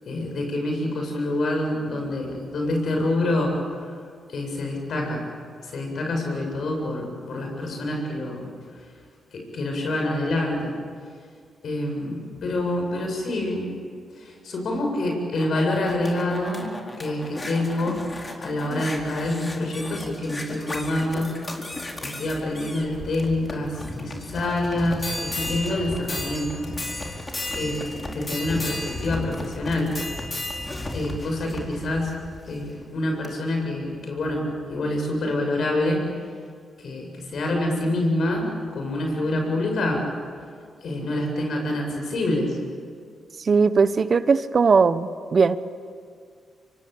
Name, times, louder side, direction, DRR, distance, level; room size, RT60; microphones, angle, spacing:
voice 1, 0.0-3.6 3.8-3.9 4.3-5.2 5.6-8.5 8.7-8.8 9.3-10.7 11.6-13.7 14.2-16.7 17.0-18.0 18.4-21.4 22.0-26.7 27.5-29.9 30.9-32.1 32.5-36.0 36.8-40.0 40.8-42.6, left 1 dB, 65° left, 2 dB, 7.7 m, -26 dB
sound 1, 15.1-32.7 33.2-33.3, left 1 dB, 30° left, 4.5 m, -34 dB
voice 2, 43.5-45.6, right 5 dB, 50° right, 14 dB, 1.0 m, -19 dB
24.5 x 24.5 x 8.7 m, 2.1 s
supercardioid pair, 50°, 0 cm